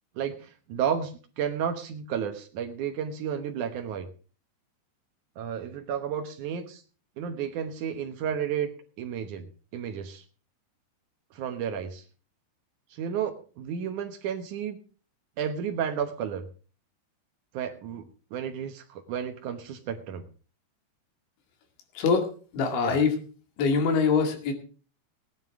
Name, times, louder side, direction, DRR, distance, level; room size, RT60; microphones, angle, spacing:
voice 1, 0.2-4.1 5.4-6.8 7.2-8.7 9.0-9.5 9.7-10.2 11.3-12.0 12.9-14.8 15.4-16.5 17.5-20.2 22.7-23.0, right 8 dB, 80° right, 6 dB, 1.7 m, -32 dB
voice 2, 22.0-23.2 23.6-24.5, left 5 dB, 80° left, 6 dB, 4.5 m, -24 dB
17.0 x 11.0 x 3.6 m, 0.38 s
omnidirectional pair, 5.2 m